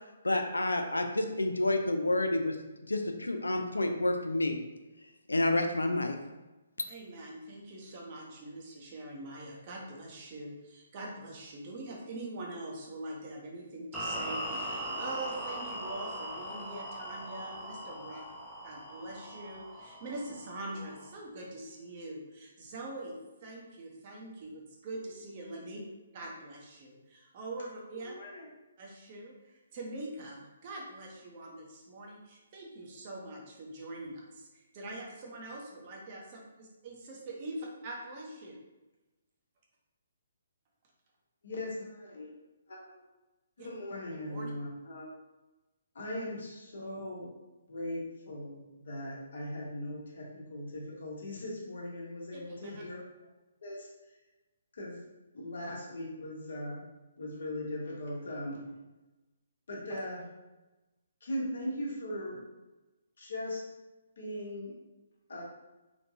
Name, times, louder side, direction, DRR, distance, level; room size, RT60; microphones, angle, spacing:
voice 1, 0.2-2.6 2.9-4.6 5.3-6.2, left 2 dB, 85° left, 5 dB, 0.4 m, -29 dB
voice 2, 6.9-18.2 18.6-25.8 26.1-28.2 28.8-38.6 43.6-43.7 44.1-44.5 52.3-52.7, right 2 dB, 40° right, -1 dB, 0.8 m, -43 dB
sound 1, 13.9-21.1, equal, ahead, 0.6 m, -40 dB
voice 3, 28.0-28.5 41.4-42.3 42.7-43.0 43.6-45.1 45.9-47.3 47.7-53.0 53.6-53.9 54.7-55.0 55.3-56.8 57.2-58.6 59.7-60.2 61.2-62.4 63.2-63.6 64.2-64.7 65.3-65.4, left 1 dB, 65° left, -3 dB, 1.0 m, -39 dB
3.1 x 2.7 x 2.6 m, 1.1 s
figure-of-eight pair, 135°, 0 cm